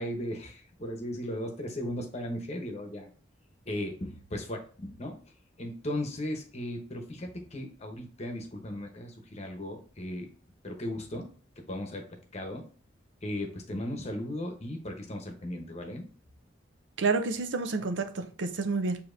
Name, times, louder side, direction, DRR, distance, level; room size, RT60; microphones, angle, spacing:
voice 1, 0.0-3.1 3.7-5.2 5.6-10.3 10.6-11.3 11.7-12.6 13.2-16.1, left 1 dB, 35° left, 0.9 m, -36 dB
voice 2, 17.0-19.0, right 4 dB, 75° right, 0.6 m, -29 dB
6.8 x 2.8 x 2.6 m
head